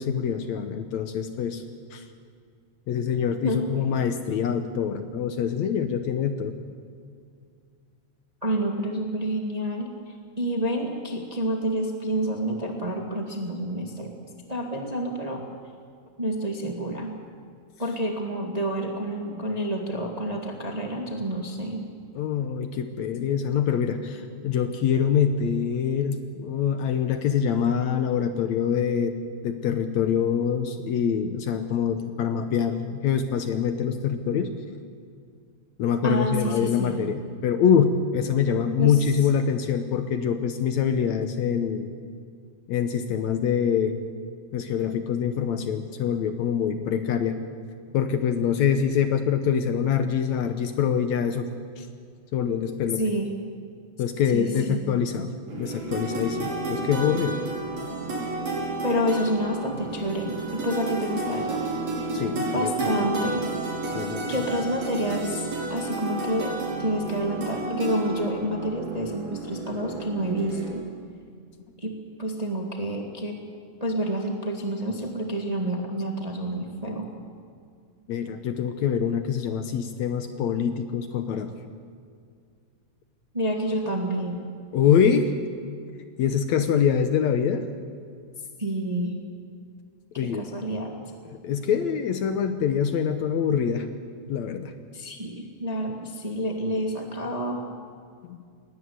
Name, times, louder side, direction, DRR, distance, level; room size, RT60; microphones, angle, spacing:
voice 1, 0.0-1.6 1.9-2.1 2.9-6.6 22.2-34.5 35.8-41.9 42.7-44.0 44.5-47.4 47.9-51.5 51.8-51.9 52.3-53.0 54.0-57.4 62.1-63.0 63.9-64.3 78.1-81.5 84.7-85.3 86.2-87.7 90.2-90.4 91.3-93.9 94.3-94.7 98.3-98.4, left 7 dB, 70° left, 8 dB, 2.0 m, -25 dB
voice 2, 8.4-9.9 10.4-14.2 14.5-15.4 16.2-17.1 17.8-21.8 36.0-37.0 38.8-39.0 53.0-53.3 54.3-54.8 58.8-61.7 62.5-63.5 64.3-70.8 71.8-71.9 72.2-73.4 73.8-77.1 83.3-84.5 88.6-89.2 90.2-90.9 94.9-97.7, right 1 dB, 15° right, 2 dB, 1.3 m, -28 dB
sound 1, 55.5-70.7, right 2 dB, 55° right, 6.0 m, -31 dB
19.5 x 16.5 x 9.5 m, 2.2 s
omnidirectional pair, 3.7 m